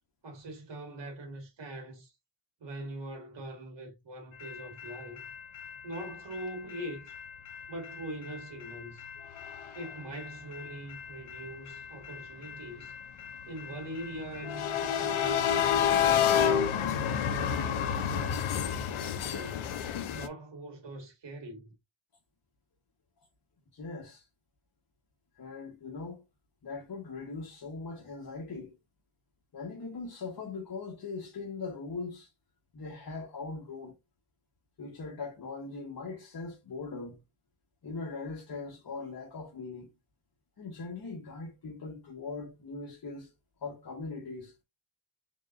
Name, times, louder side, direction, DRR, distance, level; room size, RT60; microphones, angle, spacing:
voice 1, 0.2-2.1 2.6-5.2 5.8-7.2 7.7-9.1 9.7-13.0 13.5-16.4 17.2-19.7 20.1-21.7, right 1 dB, 60° right, 2.0 m, -42 dB
sound 1, 4.4-20.3, left 8 dB, 75° left, 0.7 m, -31 dB
voice 2, 23.7-24.3 25.4-26.2 26.6-28.8 29.5-32.3 32.7-33.9 34.8-37.2 37.8-39.9 40.6-43.3 43.6-44.5, left 4 dB, 45° left, 1.3 m, -40 dB
3.9 x 3.6 x 2.5 m
cardioid pair, 90°, 49 cm